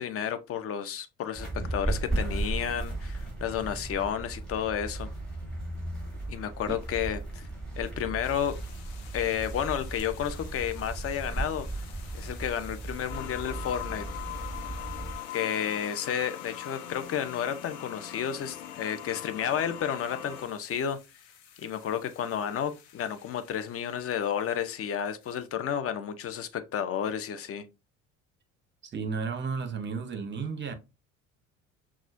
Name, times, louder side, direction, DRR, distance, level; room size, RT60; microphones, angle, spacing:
voice 1, 0.0-5.1 6.3-7.5 7.8-8.6 9.1-11.8 12.1-14.0 15.3-21.0 21.6-27.7, left 9 dB, 35° left, 0.7 m, -31 dB
sound 1, 1.4-15.1, right 2 dB, ahead, 2.5 m, -36 dB
sound 2, 8.2-25.5, left 7 dB, 60° left, 1.0 m, -53 dB
sound 3, 13.1-20.4, left 12 dB, 80° left, 0.6 m, -41 dB
voice 2, 28.8-30.7, right 5 dB, 25° right, 0.9 m, -33 dB
5.9 x 2.4 x 2.6 m
figure-of-eight pair, 60°, 40 cm